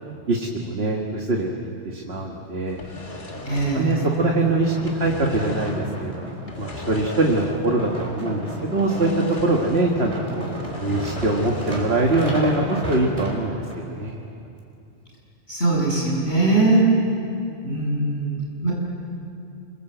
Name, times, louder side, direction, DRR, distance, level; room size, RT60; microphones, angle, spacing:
voice 1, 0.3-2.8 3.7-14.2, right 2 dB, 65° right, 0 dB, 2.0 m, -23 dB
sound 1, 2.7-4.4 4.7-5.9 6.4-7.8 8.1-8.2 8.8-10.0 10.3-12.2, left 3 dB, 45° left, 2.0 m, -37 dB
sound 2, 2.8-13.8 14.4-14.5, equal, 30° right, 4.5 m, -33 dB
voice 2, 3.5-4.0 15.5-16.9 17.6-18.7, right 2 dB, 75° left, -3 dB, 7.8 m, -21 dB
27.5 x 24.0 x 8.1 m, 2.6 s
omnidirectional pair, 1.1 m